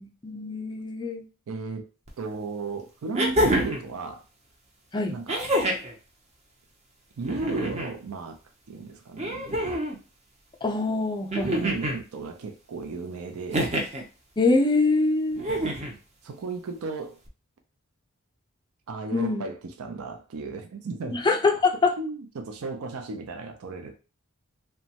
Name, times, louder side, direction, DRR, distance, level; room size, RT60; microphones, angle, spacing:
voice 1, 0.2-1.2 4.9-5.2 10.6-11.7 14.4-15.4 19.1-19.4 21.1-21.9, left 3 dB, 20° left, 0.4 m, -24 dB
voice 2, 1.5-1.9 2.2-4.2 5.1-5.5 7.2-8.4 8.7-9.5 11.4-13.8 16.2-17.2 18.9-21.2 22.0-24.0, right 3 dB, 70° right, 0.4 m, -35 dB
sound 1, 2.1-2.2 3.1-3.9 5.3-5.9 7.2-7.9 9.2-10.0 11.3-12.0 13.5-14.0 15.4-15.9 17.3-17.4, right 1 dB, 30° right, 0.6 m, -26 dB
3.0 x 2.2 x 2.8 m
head